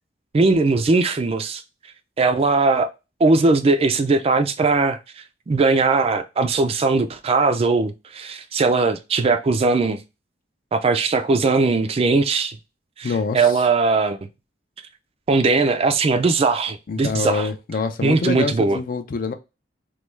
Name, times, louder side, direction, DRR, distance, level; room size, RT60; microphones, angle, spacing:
voice 1, 0.3-1.6 2.2-2.9 3.2-5.0 5.5-10.0 10.7-12.6 13.0-14.2 15.3-17.5 18.0-18.8, right 3 dB, 30° right, 0.3 m, -19 dB
voice 2, 13.0-13.5 16.9-19.3, left 4 dB, 50° left, 0.4 m, -25 dB
3.1 x 2.3 x 3.2 m
head